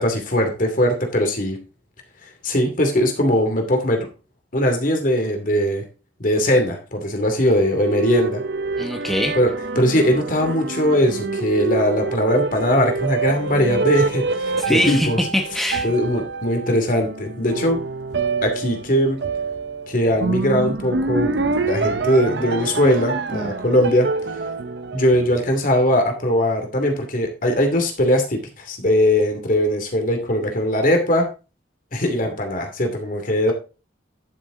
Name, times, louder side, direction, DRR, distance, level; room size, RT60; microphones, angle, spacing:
voice 1, 0.0-1.6 2.4-4.1 4.5-5.8 6.2-8.4 9.3-15.2 15.8-17.8 18.4-19.2 19.9-24.1 24.9-31.3 31.9-33.5, equal, 45° left, 4 dB, 2.7 m, -20 dB
sound 1, 7.3-25.8, right 3 dB, 65° right, 0.8 m, -26 dB
voice 2, 8.8-9.3 14.6-15.1 15.3-15.9, equal, ahead, 2 dB, 1.2 m, -22 dB
11.5 x 7.1 x 3.8 m, 0.32 s
head